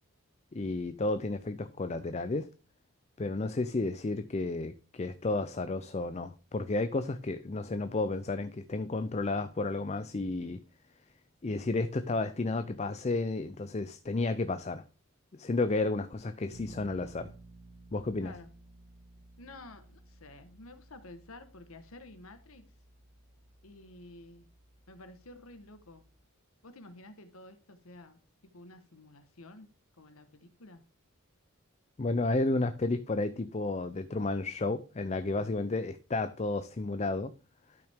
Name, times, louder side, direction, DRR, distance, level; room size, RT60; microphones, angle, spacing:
voice 1, 0.5-2.5 3.2-10.6 11.4-14.8 15.3-17.3 17.9-18.3 32.0-37.3, left 2 dB, 30° left, 0.5 m, -32 dB
Bass guitar, 16.5-26.3, right 2 dB, 85° right, 1.2 m, -56 dB
voice 2, 19.4-22.6 23.6-24.4 24.9-26.0 26.6-29.7 30.0-30.8, left 2 dB, 80° left, 1.3 m, -51 dB
12.0 x 5.9 x 3.6 m
head